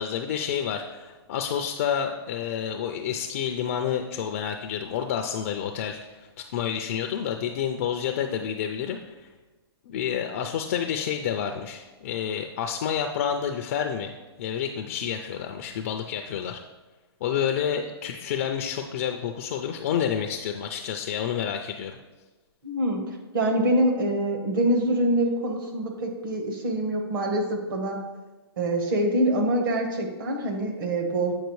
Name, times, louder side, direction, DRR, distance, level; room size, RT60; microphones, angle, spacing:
voice 1, 0.0-9.3 9.9-16.6 17.2-22.0, left 8 dB, 35° left, 5 dB, 0.3 m, -29 dB
voice 2, 22.6-23.0 23.3-28.0 28.6-31.3, right 1 dB, 55° right, 3 dB, 1.2 m, -25 dB
8.0 x 4.8 x 3.1 m, 1.2 s
hypercardioid pair, 160°, 14 cm